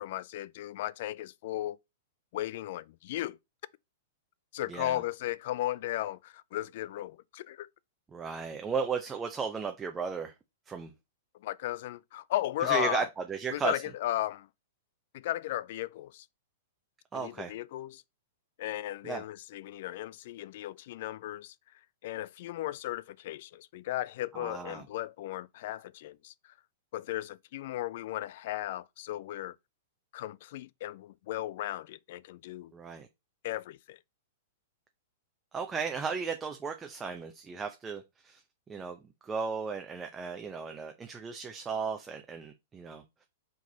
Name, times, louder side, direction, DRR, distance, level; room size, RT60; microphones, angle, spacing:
voice 1, 0.0-1.8 2.3-3.4 4.5-7.7 11.4-13.1 13.5-14.5 15.1-16.3 17.1-18.0 18.6-21.5 22.0-26.3 26.9-29.6 30.1-32.7 33.4-34.0, left 14 dB, 55° left, 0.4 m, -35 dB
voice 2, 4.7-5.0 8.1-10.3 10.7-10.9 12.6-13.8 17.1-17.5 19.0-19.2 24.3-24.8 32.7-33.1 35.5-38.4 38.7-43.3, right 5 dB, 15° right, 0.7 m, -35 dB
4.9 x 3.9 x 5.4 m
figure-of-eight pair, 105°, 0 cm